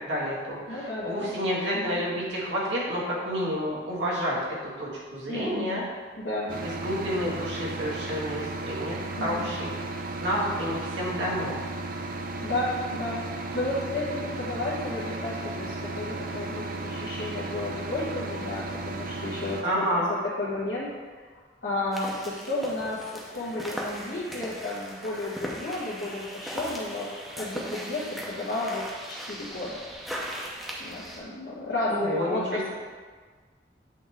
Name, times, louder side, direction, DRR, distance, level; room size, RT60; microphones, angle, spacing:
voice 1, 0.0-4.4 4.8-5.8 6.6-9.7 10.2-11.6 19.6-20.1 31.9-32.4, equal, 90° right, -6 dB, 1.8 m, -29 dB
voice 2, 0.7-1.4 1.7-2.0 5.3-5.7 6.2-6.5 9.2-9.5 12.4-13.2 13.5-20.9 21.6-27.1 27.3-29.8 30.8-32.7, left 2 dB, 75° left, -9 dB, 1.2 m, -32 dB
sound 1, 6.5-19.6, right 2 dB, 50° right, 0.4 m, -35 dB
sound 2, 21.9-31.2, equal, ahead, 0.7 m, -38 dB
8.2 x 3.5 x 3.5 m, 1.5 s
head